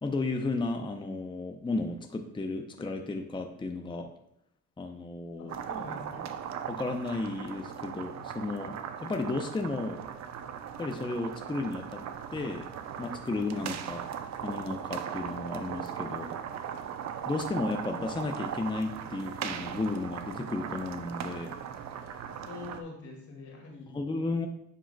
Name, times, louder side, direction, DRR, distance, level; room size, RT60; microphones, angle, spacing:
voice 1, 0.0-4.1 4.8-5.6 6.7-10.0 10.8-12.0 12.3-12.7 13.0-14.0 14.4-16.3 17.3-21.5 22.0-22.2 23.9-24.5, left 3 dB, 15° left, 4 dB, 0.6 m, -33 dB
voice 2, 5.4-6.2 13.5-13.7 22.4-23.9, left 3 dB, 75° left, -2 dB, 2.4 m, -44 dB
sound 1, 5.5-22.8, right 8 dB, 65° right, 0.6 m, -38 dB
10.0 x 5.1 x 2.3 m, 0.77 s
cardioid pair, 90°, 30 cm